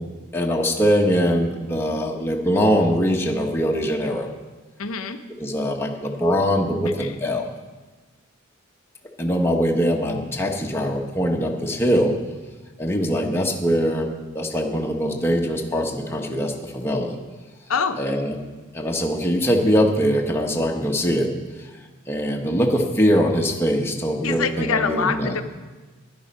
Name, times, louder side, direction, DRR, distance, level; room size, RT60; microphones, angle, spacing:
voice 1, 0.3-4.3 5.4-7.5 9.2-12.2 12.8-17.2 18.0-18.4 18.7-21.3 21.6-21.7 22.1-25.4, equal, 10° left, 0 dB, 1.2 m, -22 dB
voice 2, 4.8-5.2 6.9-7.1 17.7-18.0 24.2-25.4, left 5 dB, 85° left, 8 dB, 0.8 m, -25 dB
12.0 x 10.5 x 5.4 m, 1.3 s
head